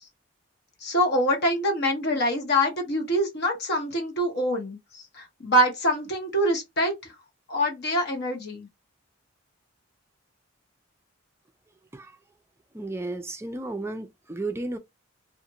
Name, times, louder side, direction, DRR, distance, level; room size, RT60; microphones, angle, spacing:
voice 1, 0.8-6.9 7.5-8.7, equal, 55° left, 0.9 m, -25 dB
voice 2, 12.7-14.8, right 2 dB, 15° right, 0.4 m, -33 dB
2.5 x 2.4 x 2.7 m
head